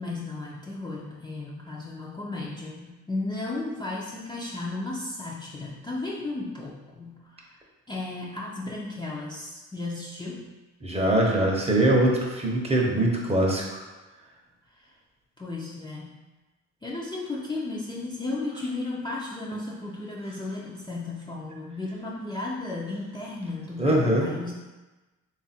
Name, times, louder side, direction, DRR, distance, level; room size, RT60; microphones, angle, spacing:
voice 1, 0.0-7.6 7.9-10.5 14.8-14.9 15.4-16.2 16.8-24.5, left 2 dB, 15° left, -5 dB, 0.5 m, -34 dB
voice 2, 10.8-13.8 23.8-24.3, right 1 dB, 20° right, -1 dB, 0.7 m, -22 dB
3.4 x 2.4 x 4.2 m, 1.2 s
cardioid pair, 90°, 30 cm